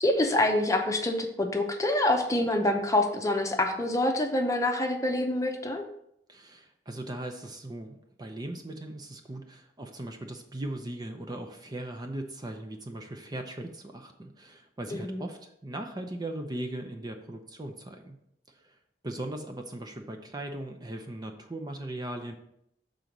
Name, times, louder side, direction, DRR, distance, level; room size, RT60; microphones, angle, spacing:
voice 1, 0.0-5.8 14.9-15.2, left 1 dB, 20° left, 3 dB, 0.8 m, -26 dB
voice 2, 6.3-18.2 18.5-18.8 19.0-22.3, right 1 dB, 25° right, 5 dB, 0.6 m, -39 dB
6.8 x 3.9 x 6.0 m, 0.76 s
head